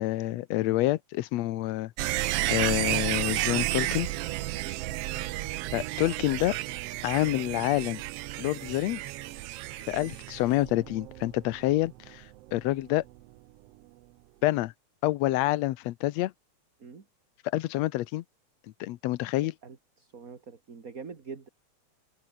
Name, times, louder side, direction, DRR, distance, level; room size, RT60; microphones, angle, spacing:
voice 1, 0.0-1.9 2.5-4.1 5.7-6.6 7.0-8.0 8.4-9.0 9.9-12.2 12.5-13.0 14.4-14.7 15.0-16.3 17.4-18.2 18.8-19.5, left 16 dB, 75° left, 1.9 m, -27 dB
sound 1, 2.0-12.8 13.1-13.2, right 17 dB, 75° right, 1.4 m, -32 dB
voice 2, 19.6-21.5, right 5 dB, 30° right, 2.2 m, -45 dB
omnidirectional pair, 3.3 m